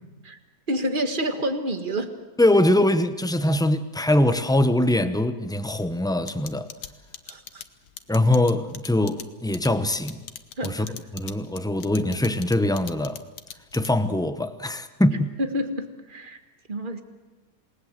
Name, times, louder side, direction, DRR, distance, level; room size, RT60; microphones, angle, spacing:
voice 1, 0.7-2.1 7.3-7.6 10.6-10.8 15.4-16.4 16.7-17.0, equal, 30° right, 1.7 m, -28 dB
voice 2, 2.4-6.7 8.1-10.2 10.6-10.9 11.1-13.2 13.7-15.3, left 1 dB, 5° left, 0.4 m, -22 dB
sound 1, 6.3-14.2, left 9 dB, 75° left, 1.6 m, -39 dB
27.5 x 19.0 x 7.8 m
omnidirectional pair, 1.8 m